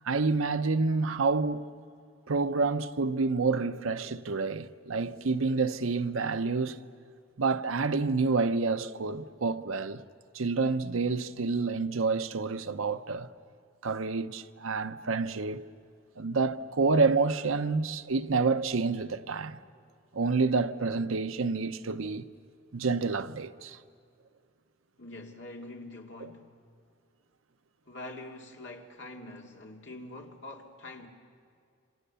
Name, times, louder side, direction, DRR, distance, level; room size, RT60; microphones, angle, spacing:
voice 1, 0.0-1.7 2.3-6.8 7.4-10.0 10.3-13.3 13.8-15.6 16.2-19.6 20.1-22.3 22.7-23.8, right 4 dB, 85° right, 0.8 m, -28 dB
voice 2, 25.0-26.5 27.9-31.1, left 2 dB, 60° left, 2.3 m, -44 dB
27.0 x 26.0 x 6.9 m
head